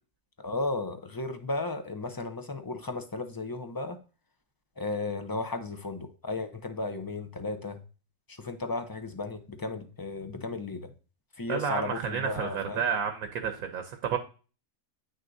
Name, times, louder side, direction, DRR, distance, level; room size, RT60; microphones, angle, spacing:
voice 1, 0.4-4.0 4.8-7.8 8.3-10.9 11.4-12.8, left 3 dB, 25° left, 7 dB, 0.5 m, -34 dB
voice 2, 11.5-14.2, right 7 dB, 80° right, 6 dB, 1.3 m, -31 dB
9.4 x 6.4 x 2.6 m, 0.35 s
omnidirectional pair, 1.5 m